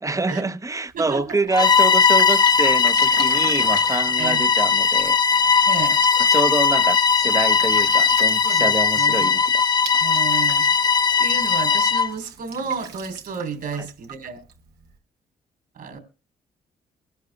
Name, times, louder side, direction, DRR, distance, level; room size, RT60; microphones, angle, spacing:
voice 1, 0.0-5.2 6.3-9.6 13.8-13.9, right 3 dB, 20° right, 0.8 m, -26 dB
voice 2, 0.9-1.4 4.1-4.4 5.6-6.0 8.4-9.3 10.0-10.7 11.2-14.4 15.7-16.0, right 5 dB, 65° right, 3.3 m, -31 dB
Drip, 0.9-15.0, right 7 dB, 85° right, 1.4 m, -41 dB
Bowed string instrument, 1.5-12.1, left 5 dB, 25° left, 0.5 m, -18 dB
23.5 x 11.5 x 2.2 m
supercardioid pair, 60°, 16 cm